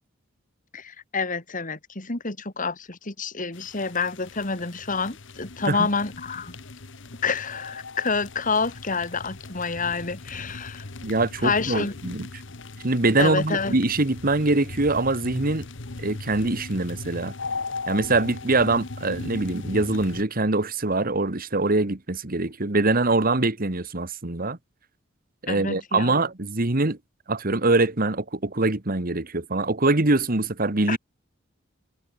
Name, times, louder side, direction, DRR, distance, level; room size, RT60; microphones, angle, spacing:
voice 1, 0.7-6.5 7.2-10.8 11.4-11.9 13.2-13.7 25.5-26.2 30.9-31.0, left 4 dB, 45° left, 2.6 m, -28 dB
sound 1, 3.5-20.2, left 3 dB, 65° left, 1.4 m, -38 dB
voice 2, 11.0-12.3 12.8-15.7 16.0-17.3 17.9-24.6 25.4-27.0 27.3-31.0, right 2 dB, 45° right, 1.8 m, -23 dB
head